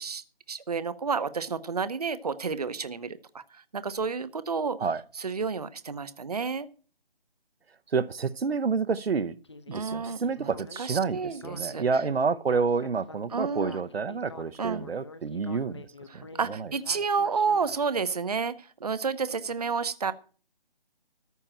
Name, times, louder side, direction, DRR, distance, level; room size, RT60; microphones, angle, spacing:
voice 1, 0.0-4.8 5.2-6.7 9.7-10.5 10.8-11.8 13.3-13.8 14.6-14.8 16.1-20.1, right 5 dB, 40° right, 0.8 m, -30 dB
voice 2, 7.9-9.4 9.7-15.9 16.1-16.7, right 5 dB, 85° right, 0.9 m, -29 dB
Speech synthesizer, 9.4-17.8, left 3 dB, 30° left, 0.8 m, -47 dB
14.0 x 5.7 x 8.8 m
hypercardioid pair, 175°, 30 cm